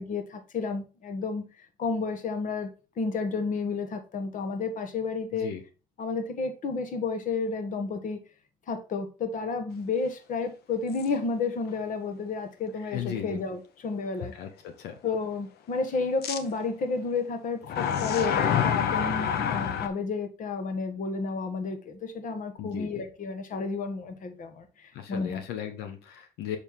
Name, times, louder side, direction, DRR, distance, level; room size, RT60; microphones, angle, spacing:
voice 1, 0.0-1.4 1.8-2.7 3.0-5.5 6.0-8.2 8.7-14.3 15.0-25.4, left 4 dB, 50° left, 1.4 m, -31 dB
voice 2, 5.3-5.6 12.9-13.4 14.2-14.9 22.6-23.0 24.9-26.6, left 9 dB, 85° left, 1.2 m, -36 dB
sound 1, 10.9-11.1 11.7-11.8 16.2-16.4 17.6-19.9, left 8 dB, 70° left, 1.0 m, -27 dB
6.6 x 4.8 x 3.7 m
cardioid pair, 110°, 17 cm